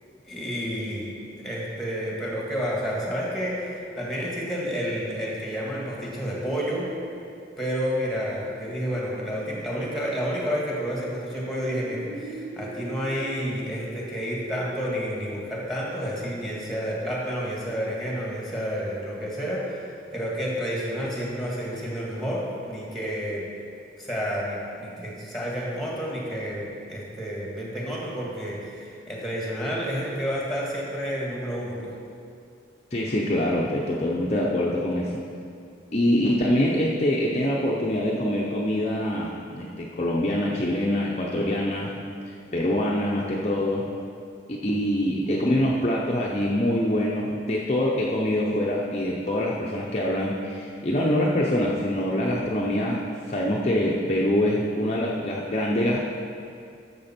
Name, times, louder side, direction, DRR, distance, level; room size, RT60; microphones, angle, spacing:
voice 1, 0.2-1.2 1.4-6.9 7.6-23.5 24.0-31.9, equal, ahead, -4 dB, 1.7 m, -30 dB
sound 1, 11.3-16.7, right 1 dB, 45° right, 0.9 m, -42 dB
voice 2, 32.9-35.2 35.9-41.9 42.3-43.9 44.6-53.0 53.3-56.0, left 1 dB, 35° left, -4 dB, 0.7 m, -24 dB
12.0 x 6.8 x 4.4 m, 2.5 s
head